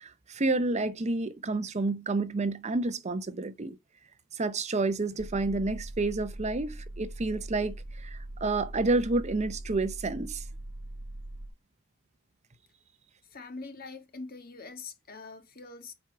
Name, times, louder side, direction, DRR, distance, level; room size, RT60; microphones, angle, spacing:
voice 1, 0.0-3.8 4.3-10.4, right 3 dB, 30° right, 0.6 m, -29 dB
sound 1, 5.2-11.5, right 1 dB, 70° right, 1.3 m, -41 dB
voice 2, 13.2-15.9, left 3 dB, 45° left, 1.5 m, -43 dB
7.7 x 4.7 x 4.8 m
head